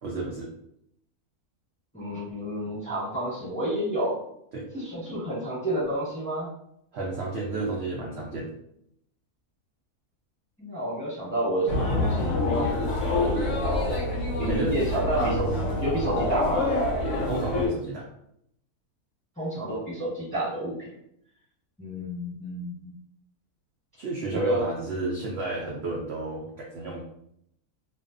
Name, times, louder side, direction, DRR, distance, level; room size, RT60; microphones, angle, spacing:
voice 1, 0.0-0.5 4.5-4.7 6.9-8.5 14.5-14.7 17.2-18.1 24.0-27.0, right 2 dB, 80° right, -3 dB, 0.5 m, -31 dB
voice 2, 1.9-4.2 4.7-6.5 10.6-12.8 13.1-14.0 14.4-15.5 15.8-16.6 19.4-20.9 21.8-22.9 24.3-24.6, right 1 dB, 5° left, -10 dB, 1.1 m, -30 dB
sound 1, 11.7-17.7, left 2 dB, 60° left, 0.9 m, -26 dB
2.5 x 2.3 x 2.4 m, 0.74 s
omnidirectional pair, 1.6 m